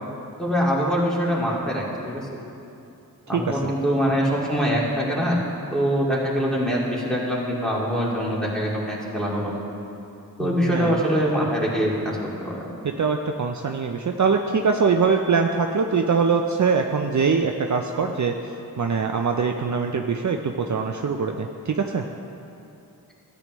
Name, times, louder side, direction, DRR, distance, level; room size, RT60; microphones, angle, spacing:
voice 1, 0.4-2.3 3.3-5.4 5.7-9.6 10.4-12.7, equal, ahead, -5 dB, 2.3 m, -24 dB
voice 2, 3.3-3.7 10.4-11.0 12.8-18.3 18.8-22.0, right 5 dB, 50° right, 3 dB, 0.5 m, -23 dB
13.5 x 9.1 x 3.1 m, 2.8 s
cardioid pair, 45°, 37 cm